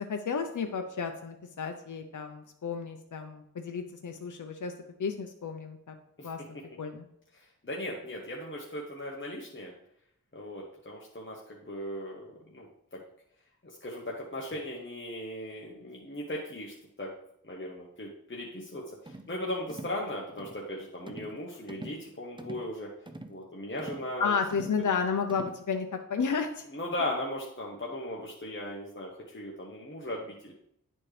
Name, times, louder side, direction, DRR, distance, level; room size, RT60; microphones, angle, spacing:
voice 1, 0.0-4.7 5.0-5.9 6.2-6.4 6.8-7.1 24.2-26.6, left 5 dB, 65° left, 5 dB, 0.6 m, -32 dB
voice 2, 7.3-9.7 10.3-13.0 13.6-17.1 17.4-22.9 23.3-24.4 26.7-30.5, left 1 dB, 35° left, -2 dB, 1.1 m, -38 dB
sound 1, 19.0-19.3 19.7-20.0 20.4-20.6 21.1-21.4 21.7-22.0 22.4-22.7 23.0-23.4 23.8-24.1 24.5-24.8 25.3-25.6, right 2 dB, 15° right, 0.5 m, -44 dB
9.9 x 4.3 x 3.3 m, 0.74 s
wide cardioid pair, 45°, 33 cm